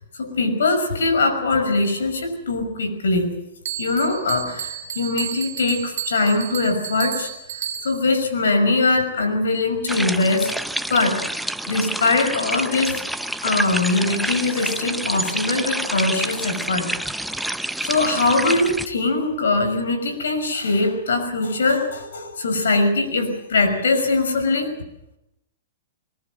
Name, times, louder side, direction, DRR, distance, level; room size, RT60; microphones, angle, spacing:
voice 1, 0.1-3.4 3.8-10.5 10.9-13.0 13.4-16.9 17.8-24.7, left 3 dB, 85° left, 8 dB, 5.8 m, -22 dB
Bell, 3.7-8.2, right 10 dB, 65° right, 2.0 m, -32 dB
sound 1, 9.9-18.9, right 1 dB, ahead, 0.7 m, -28 dB
22.0 x 21.0 x 7.6 m, 0.88 s
hypercardioid pair, 125°, 0 cm